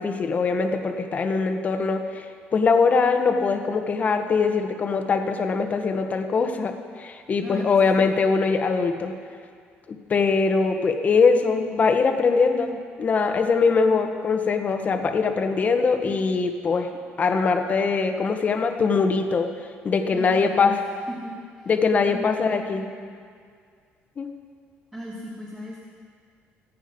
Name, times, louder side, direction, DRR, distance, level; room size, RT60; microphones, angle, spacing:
voice 1, 0.0-9.1 9.9-16.9 17.2-19.5 19.8-20.7 21.7-22.8 24.2-24.3, left 4 dB, 35° left, 5 dB, 1.4 m, -22 dB
voice 2, 7.4-8.1 20.1-21.7 22.0-23.1 24.9-25.9, equal, 15° right, -6 dB, 2.8 m, -38 dB
26.0 x 8.8 x 5.4 m, 2.1 s
cardioid pair, 125°, 4 cm